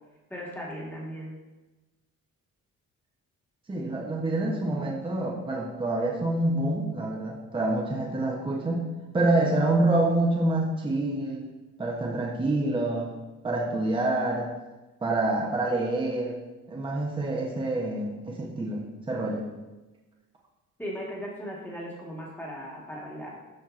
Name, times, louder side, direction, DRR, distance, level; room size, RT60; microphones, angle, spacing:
voice 1, 0.3-1.4 20.8-23.4, equal, 5° left, -4 dB, 1.4 m, -37 dB
voice 2, 3.7-8.9 9.1-11.5 11.8-13.1 13.4-14.5 15.0-16.4 16.7-19.5, right 2 dB, 15° right, -2 dB, 0.7 m, -27 dB
13.0 x 4.5 x 2.5 m, 1.1 s
cardioid pair, 170°, 33 cm